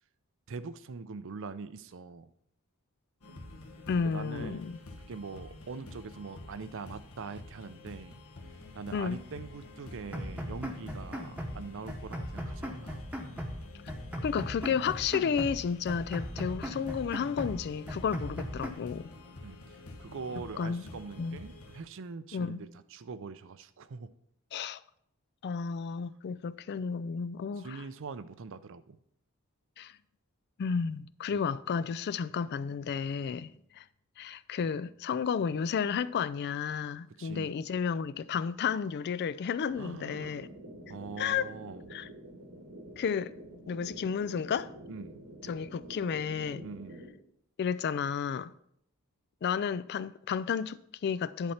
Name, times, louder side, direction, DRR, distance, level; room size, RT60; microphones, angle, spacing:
voice 1, 0.5-2.3 3.9-4.6 5.1-8.2 8.7-13.0 19.4-24.1 27.6-29.0 31.3-31.4 37.2-37.5 39.8-40.4 40.9-41.8 44.9-45.1 46.6-47.0, right 4 dB, 60° right, 0.5 m, -43 dB
sound 1, 3.2-21.8, left 2 dB, 70° left, 1.3 m, -48 dB
voice 2, 3.9-4.8 8.9-9.2 14.2-19.1 20.6-20.8 21.2-21.4 22.3-22.6 24.5-24.8 25.4-27.8 29.8-29.9 30.6-33.8 34.2-40.5 41.2-41.5 41.9-42.1 43.0-43.3 43.7-44.7 45.4-46.6 47.6-48.5 49.4-51.5, left 6 dB, 50° left, 0.3 m, -32 dB
sound 2, 10.1-11.6 11.9-13.6 13.9-15.6 15.9-17.6 17.9-18.7, equal, 5° right, 0.9 m, -38 dB
sound 3, 39.7-47.1, right 1 dB, 90° right, 1.8 m, -47 dB
10.5 x 4.2 x 5.7 m
head